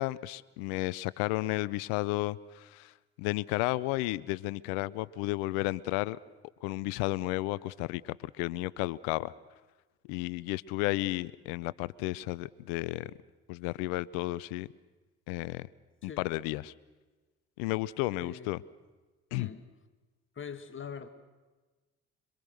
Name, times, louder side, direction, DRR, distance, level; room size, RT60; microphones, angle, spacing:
voice 1, 0.0-2.9 3.2-6.2 6.6-9.3 10.1-13.1 13.5-14.7 15.3-15.7 16.0-16.7 17.6-18.6 19.3-19.5, left 19 dB, 75° left, 21 dB, 0.7 m, -32 dB
voice 2, 18.2-18.5 19.3-19.6 20.4-21.1, left 6 dB, 35° left, 7 dB, 1.8 m, -42 dB
26.5 x 24.5 x 6.5 m, 1.3 s
hypercardioid pair, 50°, 36 cm